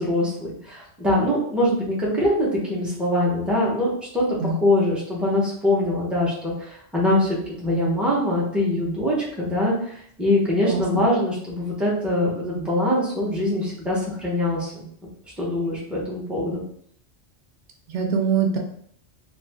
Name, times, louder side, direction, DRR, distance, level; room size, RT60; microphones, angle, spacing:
voice 1, 0.0-14.9 15.4-16.6, left 1 dB, ahead, -5 dB, 0.7 m, -23 dB
voice 2, 10.6-11.0 17.9-18.6, right 5 dB, 80° right, 2 dB, 0.9 m, -23 dB
2.6 x 2.5 x 3.4 m, 0.64 s
omnidirectional pair, 1.2 m